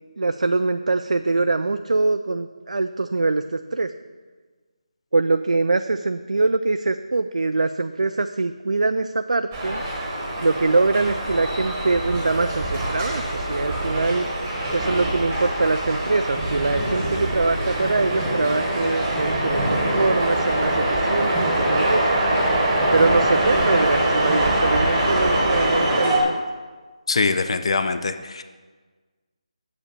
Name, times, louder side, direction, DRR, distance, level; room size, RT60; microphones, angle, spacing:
voice 1, 0.2-3.9 5.1-9.8 10.4-14.3 14.7-22.1 22.9-26.4, right 3 dB, 80° right, 9 dB, 0.4 m, -23 dB
sound 1, 9.5-26.2, right 1 dB, 15° right, 1.1 m, -23 dB
voice 2, 27.1-28.4, left 4 dB, 50° left, 10 dB, 0.4 m, -23 dB
7.2 x 5.0 x 6.7 m, 1.4 s
figure-of-eight pair, 170°, 4 cm